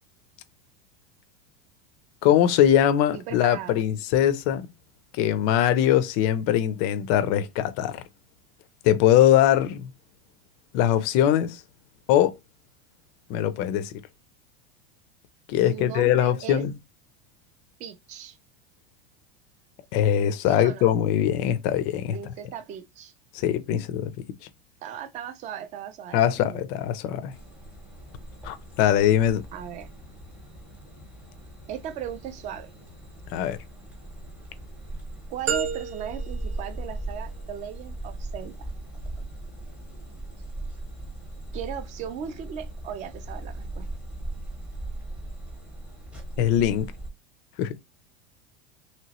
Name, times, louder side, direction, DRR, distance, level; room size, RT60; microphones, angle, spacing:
voice 1, 2.2-4.7 5.2-8.0 8.8-9.9 10.7-11.6 12.1-12.4 13.3-13.9 15.5-16.7 19.9-22.2 23.3-24.1 26.1-27.3 28.4-29.5 33.3-33.6 46.4-46.9 47.6-47.8, left 11 dB, 40° left, 0.4 m, -22 dB
voice 2, 3.1-3.7 15.7-16.6 17.8-18.4 20.4-20.9 22.1-23.1 24.8-26.6 29.5-29.9 31.7-32.7 35.3-38.7 41.5-43.9, right 9 dB, 25° right, 0.4 m, -37 dB
sound 1, 27.3-47.1, right 2 dB, 5° right, 0.8 m, -39 dB
sound 2, 35.5-37.5, right 7 dB, 85° right, 1.4 m, -32 dB
2.9 x 2.9 x 2.9 m
supercardioid pair, 160°, 29 cm